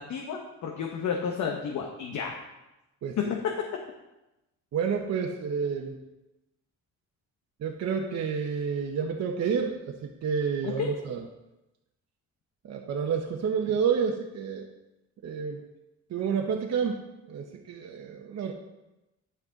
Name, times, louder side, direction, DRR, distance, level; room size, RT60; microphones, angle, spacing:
voice 1, 0.0-2.4 3.2-3.5 10.6-11.0, left 7 dB, 70° left, 1 dB, 1.0 m, -31 dB
voice 2, 3.0-3.3 4.7-5.9 7.6-11.2 12.6-14.7 15.2-15.6 16.1-18.5, right 6 dB, 60° right, 2 dB, 0.9 m, -29 dB
9.3 x 6.1 x 4.0 m, 0.97 s
cardioid pair, 90°, 30 cm